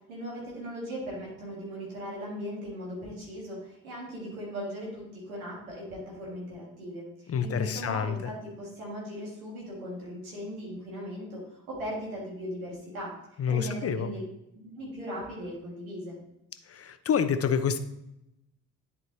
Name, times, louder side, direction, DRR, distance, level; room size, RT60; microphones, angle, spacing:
voice 1, 0.1-13.1 13.5-14.2 14.5-16.2, equal, 80° right, -3 dB, 1.8 m, -38 dB
voice 2, 7.3-8.1 13.4-14.1 16.7-17.8, left 7 dB, 35° left, 11 dB, 0.7 m, -27 dB
10.5 x 4.7 x 2.8 m, 0.85 s
figure-of-eight pair, 45°, 42 cm